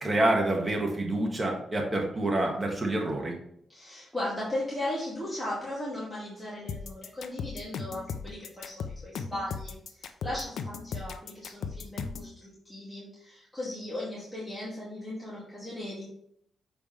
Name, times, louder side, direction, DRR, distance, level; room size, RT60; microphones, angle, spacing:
voice 1, 0.0-3.4, right 1 dB, 25° right, 1 dB, 1.6 m, -27 dB
voice 2, 3.7-16.0, left 1 dB, 10° left, -8 dB, 2.3 m, -37 dB
sound 1, 6.7-12.3, left 5 dB, 75° left, 0.6 m, -36 dB
6.9 x 5.0 x 3.2 m, 0.70 s
cardioid pair, 110°, 0 cm